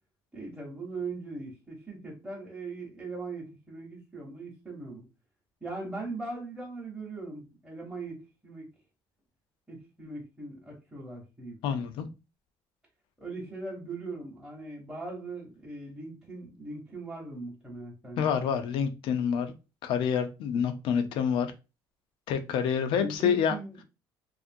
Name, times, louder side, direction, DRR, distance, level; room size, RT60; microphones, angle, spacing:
voice 1, 0.3-5.0 5.6-8.7 9.7-11.9 13.2-18.4 22.9-23.8, right 3 dB, 10° right, 0.9 m, -40 dB
voice 2, 11.6-12.1 18.2-19.5 19.8-21.5 22.3-23.6, left 7 dB, 70° left, 0.5 m, -27 dB
2.7 x 2.5 x 2.6 m
cardioid pair, 110°, 9 cm